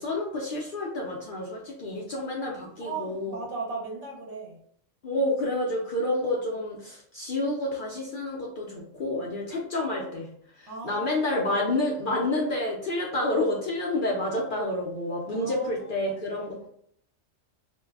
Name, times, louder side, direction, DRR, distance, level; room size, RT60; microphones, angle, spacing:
voice 1, 0.0-3.4 5.0-16.7, left 1 dB, 60° left, -2 dB, 0.6 m, -29 dB
voice 2, 2.8-4.6 10.7-11.6 15.3-16.1 16.5-16.7, right 4 dB, 65° right, -1 dB, 1.1 m, -38 dB
2.6 x 2.2 x 3.3 m, 0.67 s
omnidirectional pair, 1.3 m